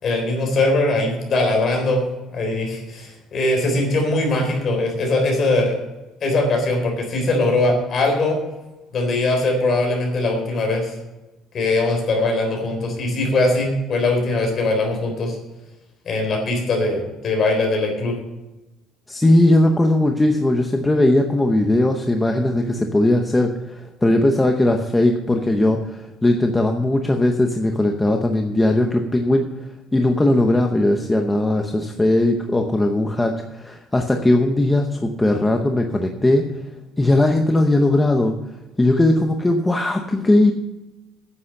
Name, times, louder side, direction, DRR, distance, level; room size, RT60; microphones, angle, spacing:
voice 1, 0.0-2.0 2.3-5.8 6.2-8.4 8.9-10.9 11.5-15.4 16.1-18.2, left 2 dB, 35° left, 2 dB, 3.9 m, -21 dB
voice 2, 19.1-29.5 29.9-36.4 37.0-38.3 38.8-40.5, left 1 dB, 10° left, 3 dB, 0.7 m, -18 dB
9.8 x 8.4 x 6.5 m, 1.1 s
cardioid pair, 170°, 0 cm